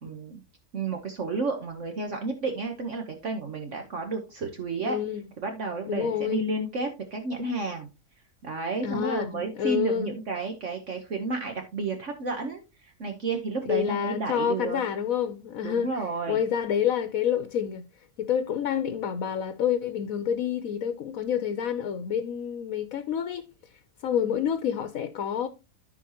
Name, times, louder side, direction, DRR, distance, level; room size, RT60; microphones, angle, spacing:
voice 1, 0.0-0.4 0.7-5.0 5.4-7.9 8.4-14.8 15.6-16.4, right 3 dB, 55° right, 1.4 m, -31 dB
voice 2, 4.9-5.2 5.9-6.4 8.8-10.2 13.7-17.9 18.2-23.4 24.0-25.5, left 9 dB, 70° left, 1.2 m, -28 dB
14.0 x 4.9 x 2.9 m
omnidirectional pair, 1.6 m